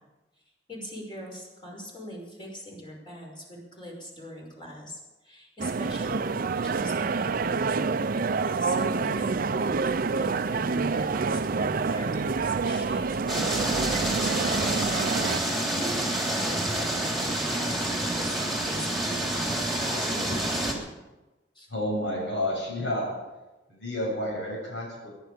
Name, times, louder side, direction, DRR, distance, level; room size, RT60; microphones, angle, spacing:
voice 1, 0.7-14.9 15.7-20.5 21.6-21.7, equal, 25° left, -1 dB, 5.6 m, -41 dB
sound 1, 5.6-15.4, right 4 dB, 50° right, 0.5 m, -27 dB
sound 2, 13.3-20.7, right 1 dB, ahead, 3.5 m, -28 dB
voice 2, 21.7-23.1 23.7-25.1, left 1 dB, 75° left, -3 dB, 7.4 m, -30 dB
24.5 x 11.0 x 5.1 m, 1.1 s
head